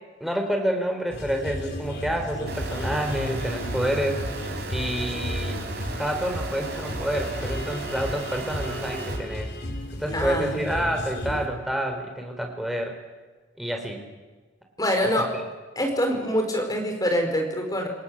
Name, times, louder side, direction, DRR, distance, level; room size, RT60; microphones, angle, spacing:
voice 1, 0.2-4.3 4.7-5.6 6.0-9.5 9.9-13.0 13.6-14.0 15.0-15.4, equal, ahead, 3 dB, 4.2 m, -28 dB
sound 1, 1.1-11.5, equal, 55° left, 3.3 m, -33 dB
sound 2, 2.5-9.2, right 3 dB, 55° right, 4.9 m, -36 dB
voice 2, 10.1-10.5 14.8-15.3 15.8-17.9, equal, 20° left, 3 dB, 4.7 m, -25 dB
28.0 x 18.0 x 8.8 m, 1.3 s
head